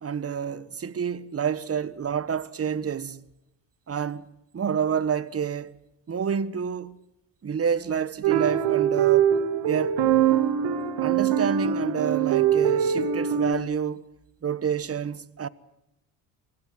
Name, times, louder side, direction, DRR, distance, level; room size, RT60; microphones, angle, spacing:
voice 1, 0.0-3.2 3.9-4.3 4.5-5.7 6.1-7.0 7.4-9.3 9.6-10.0 11.0-14.0 14.4-15.5, right 7 dB, 30° right, 1.2 m, -28 dB
sound 1, 8.2-13.5, right 9 dB, 70° right, 2.1 m, -23 dB
25.0 x 17.0 x 9.4 m
hypercardioid pair, 60°, 46 cm